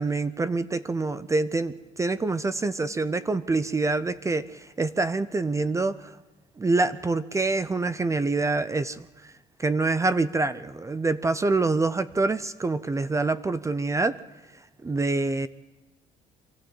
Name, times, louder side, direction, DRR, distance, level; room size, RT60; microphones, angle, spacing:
voice 1, 0.0-6.1 6.6-9.3 9.6-14.2 14.8-15.5, right 3 dB, 20° right, 14 dB, 0.6 m, -26 dB
24.0 x 14.5 x 7.4 m, 1.1 s
cardioid pair, 110°, 17 cm